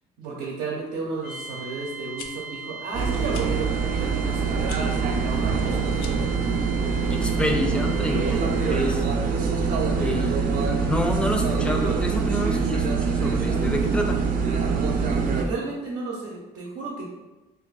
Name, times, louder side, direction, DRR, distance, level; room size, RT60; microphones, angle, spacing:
voice 1, 0.2-3.7 4.0-6.0 15.3-17.1, right 3 dB, 85° right, -3 dB, 0.7 m, -33 dB
sound 1, 1.2-8.9, right 4 dB, 80° left, 0.8 m, -40 dB
sound 2, 2.2-2.3 3.3-3.5 4.6-4.8 5.9-6.3, left 6 dB, 65° left, 0.4 m, -40 dB
sound 3, 2.9-15.4, right 5 dB, 55° right, 0.5 m, -24 dB
voice 2, 7.1-9.0 10.0-14.2, left 1 dB, 5° left, 3 dB, 0.4 m, -28 dB
2.5 x 2.4 x 3.9 m, 1.1 s
cardioid pair, 110°, 17 cm